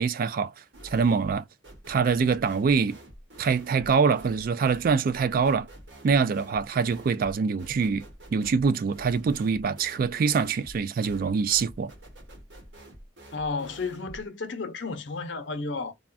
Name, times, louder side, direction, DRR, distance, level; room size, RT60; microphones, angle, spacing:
voice 1, 0.0-1.4 1.9-3.0 3.4-5.7 6.0-8.0 8.3-11.9, right 5 dB, 50° right, 0.3 m, -24 dB
sound 1, 0.7-1.4 1.6-14.3, right 1 dB, 70° right, 1.3 m, -47 dB
voice 2, 13.3-15.9, left 4 dB, 75° left, 0.7 m, -32 dB
3.5 x 2.2 x 2.4 m
head